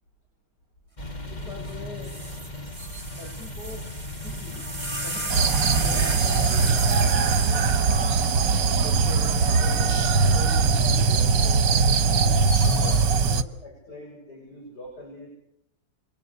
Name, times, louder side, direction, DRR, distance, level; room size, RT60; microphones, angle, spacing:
sound 1, 1.0-13.0, left 1 dB, 25° left, 2.3 m, -36 dB
voice 1, 1.3-2.1 3.2-3.9 4.2-7.7 8.3-15.3, left 1 dB, 60° left, 0 dB, 7.2 m, -42 dB
sound 2, 1.7-1.8 2.0-9.4 10.3-10.8, right 2 dB, 15° right, 2.5 m, -35 dB
sound 3, 5.3-13.4, right 4 dB, 70° right, 1.9 m, -21 dB
29.0 x 24.0 x 6.9 m, 0.76 s
omnidirectional pair, 2.0 m